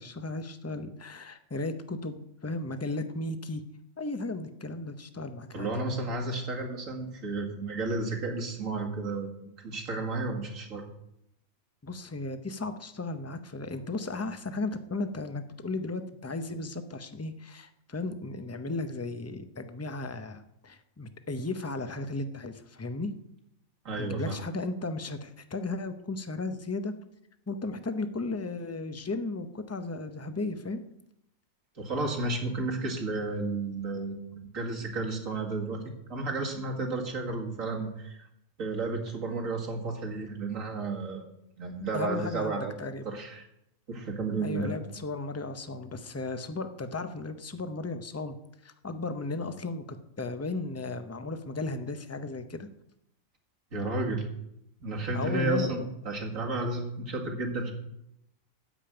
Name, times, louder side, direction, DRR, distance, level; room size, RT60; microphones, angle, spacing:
voice 1, 0.0-3.6 4.0-5.7 11.8-23.1 24.0-26.9 27.5-30.8 41.9-43.1 44.4-48.4 48.6-52.7 55.1-55.7, left 3 dB, 15° left, 9 dB, 0.5 m, -35 dB
voice 2, 5.5-10.8 23.8-24.4 31.8-35.8 36.1-38.3 38.6-41.3 41.6-43.4 43.9-44.7 53.7-54.2 54.8-57.7, right 2 dB, 70° right, 1 dB, 2.4 m, -32 dB
13.5 x 5.2 x 8.9 m, 0.80 s
omnidirectional pair, 1.4 m